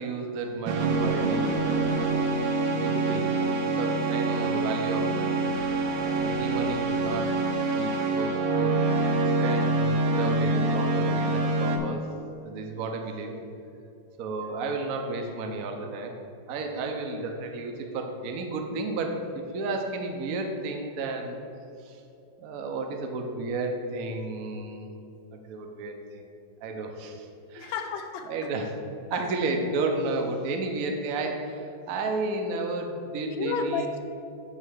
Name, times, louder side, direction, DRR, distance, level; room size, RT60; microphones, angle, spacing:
voice 1, 0.0-2.3 2.6-3.3 3.6-5.5 6.0-7.3 7.8-8.9 9.4-12.1 12.4-13.4 14.2-16.2 16.5-21.4 21.8-22.0 22.4-25.0 25.3-26.2 26.6-27.8 28.2-28.8 29.1-33.9, right 3 dB, 60° right, 3 dB, 1.0 m, -32 dB
sound 1, 0.7-11.8, right 3 dB, 90° right, 1.6 m, -26 dB
voice 2, 27.6-28.3 29.1-29.2 33.2-34.0, left 5 dB, 80° left, 7 dB, 1.4 m, -31 dB
9.1 x 3.3 x 6.5 m, 2.6 s
omnidirectional pair, 2.1 m